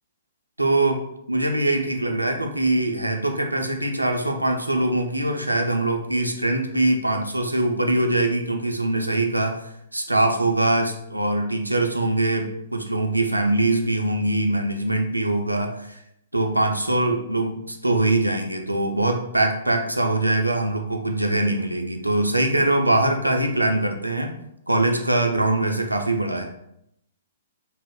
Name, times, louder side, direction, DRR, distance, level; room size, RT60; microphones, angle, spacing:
voice 1, 0.6-1.0 1.3-9.6 9.9-16.0 16.3-24.3 24.7-26.4, right 2 dB, 90° right, 3 dB, 0.4 m, -22 dB
2.4 x 2.0 x 3.4 m, 0.77 s
figure-of-eight pair, 115°, 0 cm